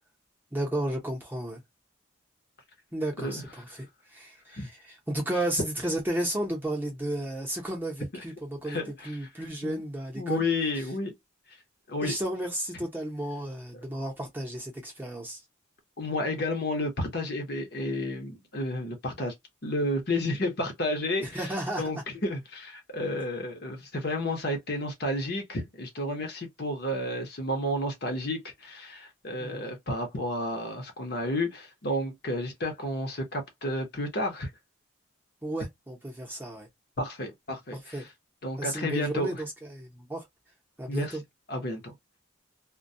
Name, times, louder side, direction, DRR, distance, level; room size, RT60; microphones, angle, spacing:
voice 1, 0.5-1.6 2.9-4.7 5.1-10.4 12.0-15.4 21.2-21.9 29.4-29.6 35.4-36.7 37.7-38.1 38.6-40.3 40.8-41.2, right 1 dB, 10° right, 0.7 m, -33 dB
voice 2, 8.6-9.3 9.6-9.8 10.1-11.1 11.9-12.1 16.0-19.3 19.6-21.4 21.8-34.5 37.0-38.1 38.4-39.4 40.9-41.2 41.5-41.9, left 1 dB, 50° left, 0.8 m, -31 dB
2.2 x 2.2 x 2.6 m
head